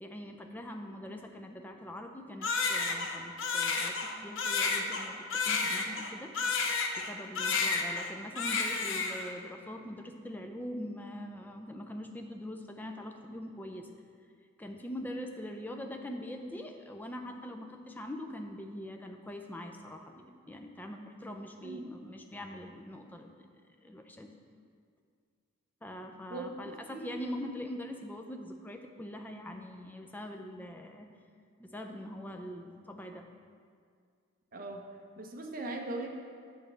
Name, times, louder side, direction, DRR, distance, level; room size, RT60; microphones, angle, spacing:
voice 1, 0.0-6.3 7.0-13.9 14.6-23.5 23.8-24.3 25.8-31.1 31.6-33.3, left 1 dB, 10° left, 3 dB, 0.4 m, -43 dB
Crying sobbing, 2.4-7.1 7.4-8.1 8.4-9.3, left 4 dB, 65° left, 0.6 m, -31 dB
voice 2, 26.3-27.2 34.5-34.8 35.2-36.1, right 2 dB, 40° right, 1 dB, 0.7 m, -40 dB
8.4 x 3.3 x 6.6 m, 2.1 s
head